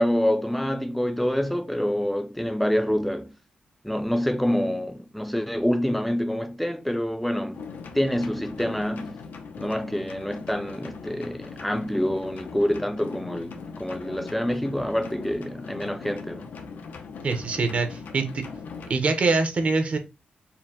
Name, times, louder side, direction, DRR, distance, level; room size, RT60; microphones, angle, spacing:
voice 1, 0.0-3.3 3.8-7.6 7.9-9.2 9.6-16.5, equal, 5° left, 0.4 m, -26 dB
sound 1, 7.5-19.0, left 5 dB, 85° left, 0.6 m, -40 dB
voice 2, 17.2-18.4 18.9-20.0, right 3 dB, 45° right, 0.7 m, -24 dB
4.4 x 2.1 x 3.6 m
wide cardioid pair, 150°, 3 cm